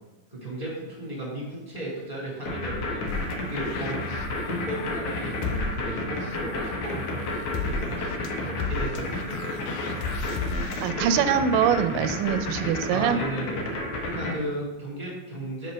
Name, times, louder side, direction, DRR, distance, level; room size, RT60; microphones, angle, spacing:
voice 1, 0.3-3.1 3.5-4.0 4.5-9.4 12.9-13.7 14.0-15.7, right 1 dB, 15° left, -5 dB, 2.0 m, -35 dB
sound 1, 2.5-14.3, left 2 dB, 65° left, 1.6 m, -31 dB
sound 2, 3.1-10.9, left 4 dB, 80° left, 1.7 m, -34 dB
voice 2, 10.8-13.2, right 8 dB, 90° right, 9 dB, 2.2 m, -23 dB
5.5 x 5.5 x 5.1 m, 1.1 s
omnidirectional pair, 3.9 m